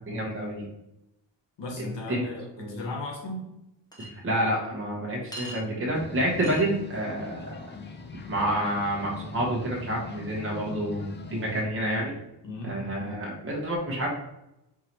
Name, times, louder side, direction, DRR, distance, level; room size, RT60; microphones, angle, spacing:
voice 1, 0.1-0.7 2.1-2.2 2.6-2.8 4.0-7.7 8.3-12.2 12.6-14.1, right 1 dB, 25° right, -3 dB, 1.0 m, -29 dB
voice 2, 1.6-3.4 12.4-12.8, left 2 dB, 65° left, 0 dB, 1.3 m, -36 dB
Chink clink, 3.9-4.1 5.3-5.6 6.4-6.6, equal, 10° left, 0.9 m, -39 dB
sound 1, 5.9-11.7, left 4 dB, 25° left, 0.3 m, -41 dB
4.8 x 2.7 x 2.9 m, 0.86 s
wide cardioid pair, 165°, 46 cm